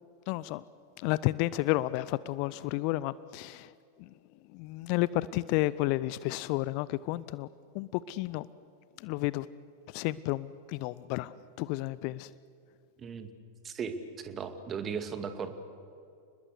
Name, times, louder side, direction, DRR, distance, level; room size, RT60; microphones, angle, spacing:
voice 1, 0.3-0.6 1.0-3.7 4.0-4.1 4.5-7.5 7.7-8.5 9.0-9.5 9.9-12.3, left 18 dB, 45° left, 19 dB, 0.6 m, -31 dB
voice 2, 13.0-13.3 13.6-15.5, right 6 dB, 25° right, 8 dB, 2.3 m, -37 dB
30.0 x 21.0 x 8.2 m, 2.5 s
figure-of-eight pair, 90°, 0 cm